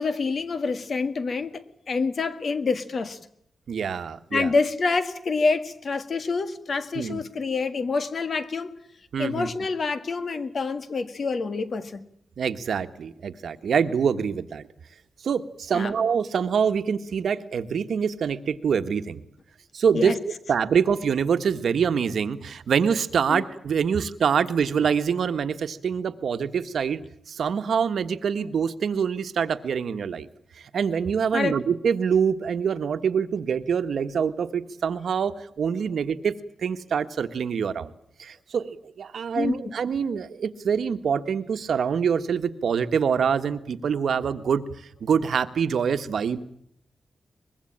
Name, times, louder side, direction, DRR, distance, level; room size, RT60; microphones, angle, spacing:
voice 1, 0.0-1.6 1.9-3.2 4.3-8.7 9.2-12.0 15.7-15.9 19.9-20.2 23.3-23.4 31.3-31.6 39.4-39.7, left 4 dB, 50° left, 1.8 m, -27 dB
voice 2, 3.7-4.5 6.9-7.2 9.1-9.5 12.4-14.7 15.2-19.2 19.7-20.2 20.5-27.0 27.3-30.3 30.6-36.3 36.6-37.9 38.2-44.6 45.0-46.4, right 7 dB, 80° right, 1.4 m, -25 dB
24.0 x 21.5 x 8.8 m
wide cardioid pair, 170°, 0 cm